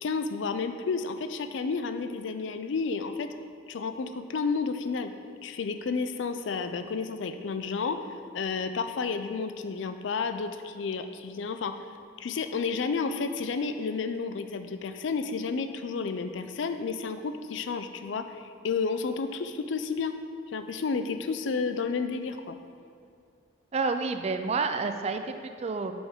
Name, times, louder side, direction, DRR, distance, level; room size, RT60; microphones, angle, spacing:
voice 1, 0.0-3.3 3.7-5.1 5.4-8.0 8.3-11.8 12.2-20.2 20.5-22.6, left 4 dB, 70° left, 9 dB, 0.4 m, -31 dB
voice 2, 23.7-25.9, right 4 dB, 35° right, 7 dB, 0.4 m, -29 dB
8.0 x 5.2 x 3.6 m, 2.5 s
head